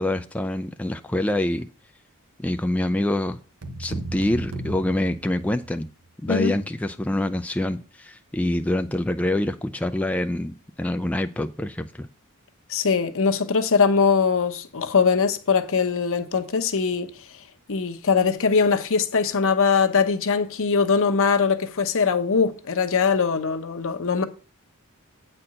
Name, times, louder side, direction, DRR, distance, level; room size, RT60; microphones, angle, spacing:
voice 1, 0.0-1.7 2.4-3.4 3.8-5.9 6.2-12.1, left 1 dB, 5° left, 0.3 m, -26 dB
sound 1, 3.6-5.9, right 2 dB, 90° right, 1.1 m, -34 dB
voice 2, 12.7-17.1 17.7-24.2, left 5 dB, 65° left, 0.9 m, -21 dB
8.8 x 4.3 x 6.4 m
head